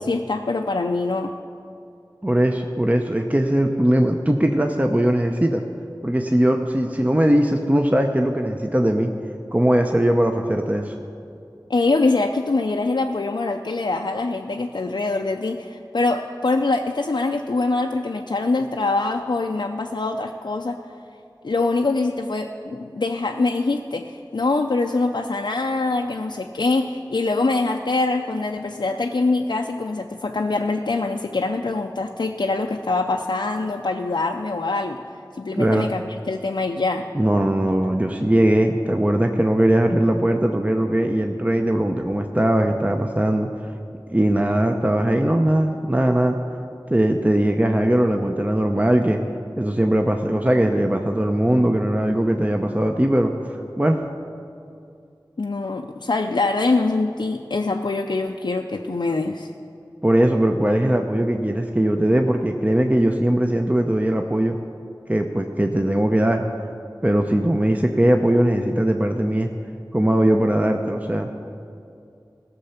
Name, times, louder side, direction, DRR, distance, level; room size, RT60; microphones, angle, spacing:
voice 1, 0.0-1.3 11.7-20.8 21.4-35.0 35.4-37.1 55.4-59.5, left 3 dB, 85° left, 2 dB, 0.5 m, -24 dB
voice 2, 2.2-5.6 6.0-9.1 9.5-10.9 35.6-35.9 37.1-43.5 44.1-46.4 46.9-49.2 49.6-54.0 60.0-64.6 65.1-66.4 67.0-69.5 69.9-71.3, right 1 dB, 20° right, 4 dB, 0.6 m, -20 dB
16.5 x 6.8 x 5.7 m, 2.5 s
wide cardioid pair, 40°, 8 cm